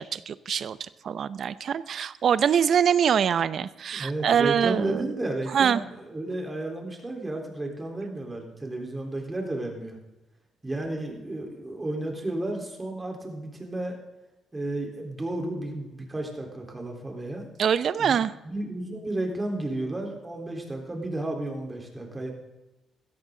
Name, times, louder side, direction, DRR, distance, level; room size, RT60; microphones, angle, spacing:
voice 1, 0.0-5.1 5.5-5.8 17.6-18.3, right 8 dB, 60° right, 16 dB, 0.6 m, -24 dB
voice 2, 3.9-10.0 10.6-14.0 14.5-17.5 18.0-18.2 18.4-22.3, right 2 dB, 20° right, 1 dB, 3.8 m, -32 dB
16.0 x 13.5 x 3.9 m, 1.0 s
cardioid pair, 90°, 0 cm